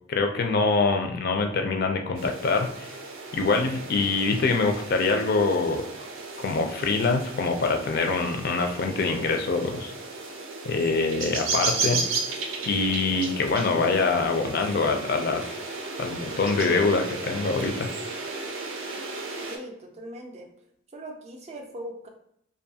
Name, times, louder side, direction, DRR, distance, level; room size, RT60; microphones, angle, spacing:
voice 1, 0.1-2.9 3.3-5.8 6.4-9.9 10.7-12.0 12.6-15.6 16.0-17.9, left 3 dB, 50° left, 4 dB, 0.3 m, -24 dB
sound 1, 2.2-19.6, right 3 dB, 80° right, 0.5 m, -34 dB
voice 2, 19.4-20.5 20.9-22.1, right 1 dB, 35° right, 3 dB, 0.4 m, -40 dB
2.6 x 2.2 x 2.7 m, 0.72 s
head